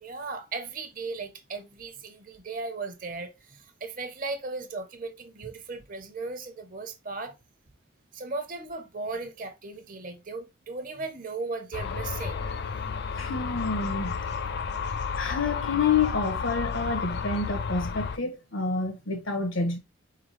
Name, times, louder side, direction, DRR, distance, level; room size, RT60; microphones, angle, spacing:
voice 1, 0.0-7.3 8.1-12.4, right 3 dB, 40° right, 0.8 m, -37 dB
sound 1, 11.7-18.2, left 5 dB, 55° left, 0.4 m, -32 dB
voice 2, 13.1-14.2 15.1-19.8, left 4 dB, 75° left, 1.4 m, -28 dB
4.6 x 3.8 x 3.1 m
head